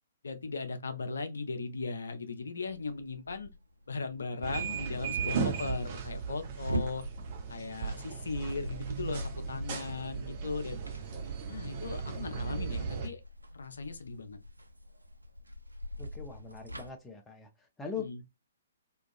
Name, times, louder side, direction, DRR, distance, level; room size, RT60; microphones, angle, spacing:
voice 1, 0.2-3.5 3.9-7.0 7.5-10.8 11.5-13.2 13.5-14.4 18.0-18.2, left 4 dB, 65° left, 0.4 m, -38 dB
sound 1, 2.7-16.9, equal, 85° right, 0.4 m, -44 dB
sound 2, 4.4-13.1, right 6 dB, 40° right, 0.6 m, -36 dB
voice 2, 16.0-17.5 17.8-18.3, left 6 dB, 10° left, 0.5 m, -41 dB
2.4 x 2.2 x 2.5 m
figure-of-eight pair, 125°, 0 cm